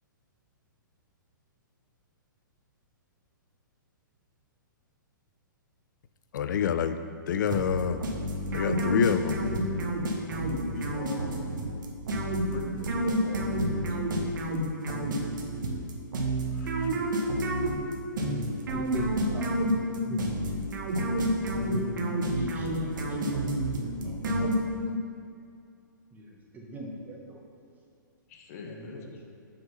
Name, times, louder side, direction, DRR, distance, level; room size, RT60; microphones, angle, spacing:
voice 1, 6.3-7.0 7.3-8.0 8.5-9.4 16.6-16.9, left 8 dB, 65° left, 10 dB, 0.4 m, -27 dB
sound 1, 7.5-25.0, equal, 65° right, 0.9 m, -29 dB
voice 2, 10.5-11.5 12.5-14.0 28.3-29.2, left 3 dB, 45° left, 2 dB, 0.9 m, -43 dB
voice 3, 18.1-20.5 21.4-23.5 24.0-24.6 26.1-27.4 28.6-29.2, right 2 dB, 15° right, -1 dB, 1.0 m, -41 dB
5.5 x 3.8 x 5.4 m, 2.4 s
hypercardioid pair, 125°, 11 cm